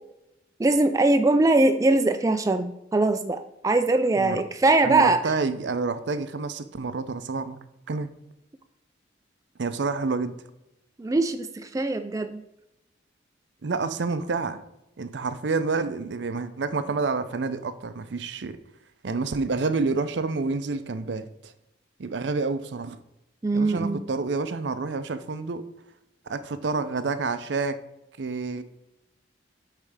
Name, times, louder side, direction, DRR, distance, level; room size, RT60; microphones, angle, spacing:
voice 1, 0.6-5.2 11.0-12.4 23.4-24.0, right 2 dB, 20° right, 0.3 m, -22 dB
voice 2, 4.8-7.6 7.9-8.1 9.6-10.4 13.6-14.6 15.0-18.6 19.0-21.5 22.0-23.0 23.5-25.6 26.3-27.8 28.2-28.6, right 4 dB, 70° right, 0.5 m, -28 dB
8.5 x 3.3 x 4.8 m
head